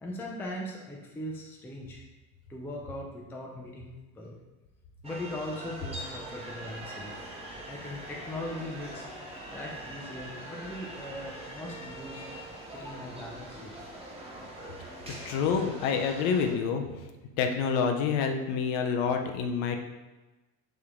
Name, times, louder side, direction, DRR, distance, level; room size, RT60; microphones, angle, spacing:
voice 1, 0.0-2.0 2.5-3.9 4.1-4.4 5.0-7.2 7.7-9.0 9.5-12.2 12.7-13.8, left 1 dB, 5° left, -2 dB, 0.4 m, -39 dB
sound 1, 5.0-16.5, right 1 dB, 10° right, 0.9 m, -43 dB
voice 2, 15.2-16.8 17.4-19.8, left 6 dB, 55° left, 5 dB, 0.7 m, -27 dB
3.5 x 2.7 x 3.6 m, 1.1 s
hypercardioid pair, 75°, 48 cm